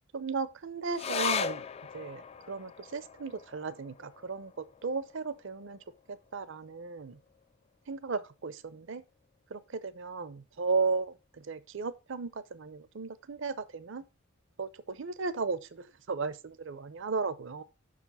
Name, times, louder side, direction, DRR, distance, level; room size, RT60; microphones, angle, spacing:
voice 1, 0.1-1.7 1.9-5.8 6.1-7.2 7.9-9.0 9.5-14.1 14.6-17.6, right 4 dB, 65° right, 0.6 m, -35 dB
sound 1, 0.9-7.7 8.0-8.1 8.5-9.1 9.7-9.8, left 7 dB, 30° left, 0.3 m, -39 dB
6.2 x 5.0 x 5.4 m
head